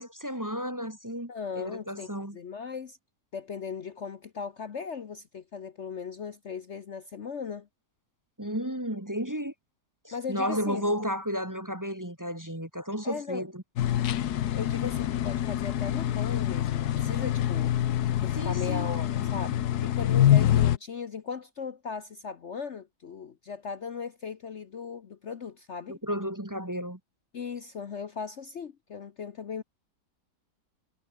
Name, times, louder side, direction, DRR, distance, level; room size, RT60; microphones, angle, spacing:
voice 1, 0.0-2.4 8.4-9.5 10.0-13.6 18.4-18.9 25.9-27.0, equal, 10° right, 1.6 m, -33 dB
voice 2, 1.3-3.0 3.3-7.7 10.1-10.8 13.0-13.5 14.5-17.7 18.2-26.0 27.3-29.6, left 6 dB, 50° left, 1.2 m, -38 dB
sound 1, 13.8-20.8, left 11 dB, 70° left, 1.4 m, -26 dB
omnidirectional pair, 1.7 m